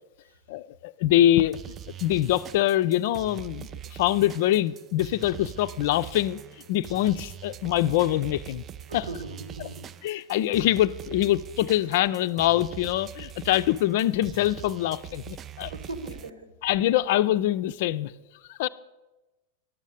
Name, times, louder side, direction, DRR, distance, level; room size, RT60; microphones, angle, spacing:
voice 1, 0.5-1.6 2.0-6.4 6.7-8.6 8.9-9.0 10.0-15.7 16.6-18.1 18.5-18.7, left 13 dB, 50° left, 0.3 m, -24 dB
sound 1, 1.5-16.3, right 10 dB, 25° right, 0.3 m, -42 dB
voice 2, 8.9-9.9 15.7-16.5, right 3 dB, 75° right, 1.3 m, -39 dB
11.0 x 7.2 x 6.7 m
figure-of-eight pair, 90°, 0 cm